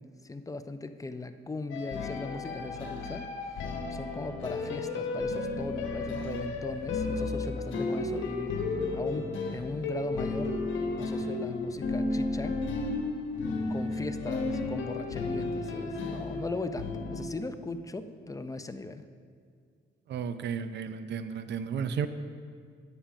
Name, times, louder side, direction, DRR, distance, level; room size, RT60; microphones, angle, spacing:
voice 1, 0.2-8.5 8.9-10.6 11.0-12.6 13.7-19.1, left 3 dB, 15° left, 10 dB, 0.6 m, -38 dB
sound 1, 1.7-17.3, left 3 dB, 75° left, 1.4 m, -33 dB
voice 2, 20.1-22.1, right 7 dB, 60° right, 11 dB, 0.6 m, -33 dB
9.9 x 8.7 x 5.1 m, 2.1 s
cardioid pair, 90°, 20 cm